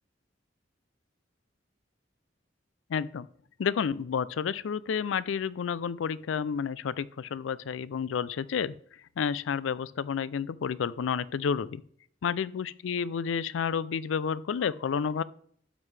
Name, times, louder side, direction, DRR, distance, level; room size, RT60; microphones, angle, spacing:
voice 1, 2.9-3.3 3.6-8.7 9.2-11.8 12.2-15.2, left 6 dB, 90° left, 18 dB, 0.4 m, -30 dB
12.0 x 7.4 x 3.3 m, 0.62 s
head